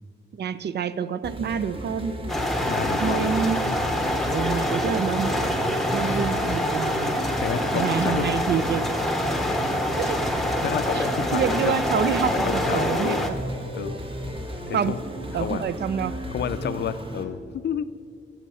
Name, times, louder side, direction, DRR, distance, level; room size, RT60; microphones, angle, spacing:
voice 1, 0.3-2.3 3.0-3.6 4.3-5.3 5.9-7.2 7.7-8.9 10.0-10.2 10.9-11.1 11.3-13.4 14.7-15.0 15.3-16.2, right 7 dB, 60° right, 15 dB, 0.4 m, -27 dB
sound 1, 1.2-17.2, equal, 25° right, 1.1 m, -34 dB
sound 2, 2.3-13.3, left 1 dB, ahead, 0.8 m, -26 dB
voice 2, 2.7-3.3 6.1-6.3 7.4-8.2 10.6-11.8 12.5-13.3 13.7-14.0 14.7-15.0 15.3-15.6 16.3-17.8, left 8 dB, 60° left, 14 dB, 0.4 m, -30 dB
15.5 x 5.6 x 5.5 m, 2.3 s
wide cardioid pair, 145°, 20 cm